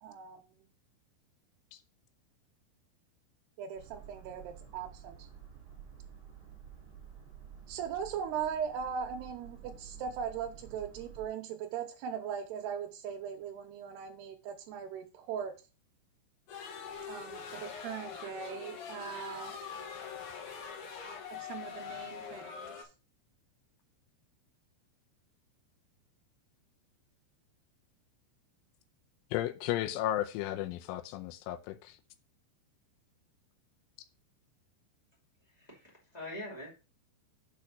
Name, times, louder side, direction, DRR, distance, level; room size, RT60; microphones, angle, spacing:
voice 1, 0.0-0.7 3.6-5.3 7.7-15.5 17.1-19.5 21.3-22.9, right 7 dB, 75° right, 2.6 m, -39 dB
Boat Water vehicle, 3.7-11.3, right 7 dB, 30° right, 3.0 m, -51 dB
sound 1, 16.5-22.8, left 7 dB, 65° left, 2.1 m, -43 dB
voice 2, 29.3-32.0, left 13 dB, 85° left, 3.2 m, -34 dB
voice 3, 35.5-36.7, left 1 dB, 20° left, 0.9 m, -44 dB
7.2 x 4.3 x 6.3 m
omnidirectional pair, 5.6 m